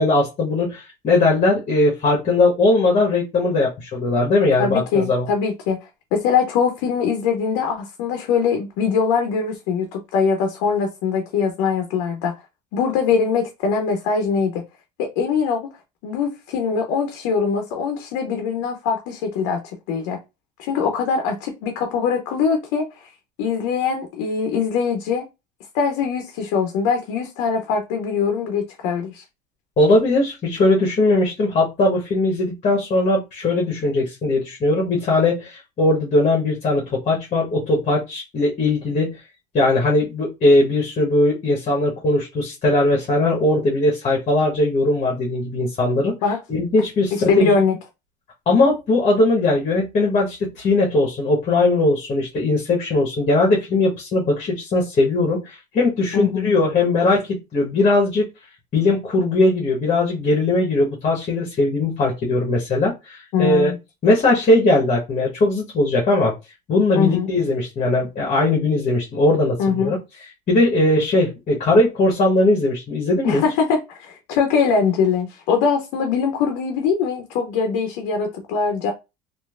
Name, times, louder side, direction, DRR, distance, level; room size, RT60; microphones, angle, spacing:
voice 1, 0.0-5.3 29.8-39.2 39.5-46.1 46.5-47.5 48.5-58.3 58.7-63.7 64.0-66.3 66.7-70.0 70.5-73.4, left 2 dB, 35° left, 1.1 m, -19 dB
voice 2, 4.6-5.8 6.1-12.3 12.7-14.6 15.0-15.7 16.0-20.2 20.6-23.1 23.4-25.3 25.7-29.2 46.2-46.4 47.1-47.8 56.1-56.5 63.3-63.8 66.9-67.3 69.6-69.9 73.2-78.9, left 5 dB, 75° left, 0.7 m, -22 dB
3.1 x 2.5 x 2.4 m
supercardioid pair, 100°, 21 cm